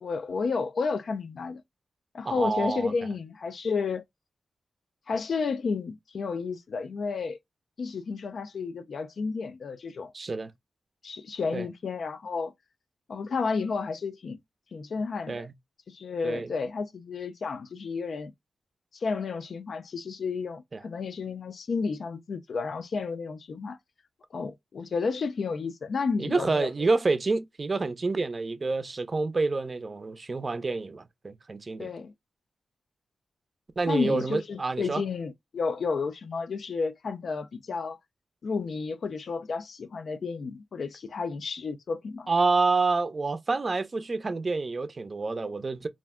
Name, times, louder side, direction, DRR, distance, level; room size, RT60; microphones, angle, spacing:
voice 1, 0.0-1.6 2.1-4.0 5.1-7.4 7.8-10.1 11.0-12.5 13.1-14.4 14.7-15.5 15.9-18.3 18.9-23.8 24.3-26.7 31.8-32.1 33.9-38.0 38.4-42.3, left 4 dB, 70° left, 0.3 m, -31 dB
voice 2, 2.2-2.9 10.1-10.5 11.5-11.6 15.3-15.5 16.2-16.5 20.7-20.8 26.2-31.9 33.8-35.0 42.3-45.9, right 3 dB, 45° right, 0.4 m, -28 dB
2.4 x 2.1 x 3.4 m
cardioid pair, 65°, 0 cm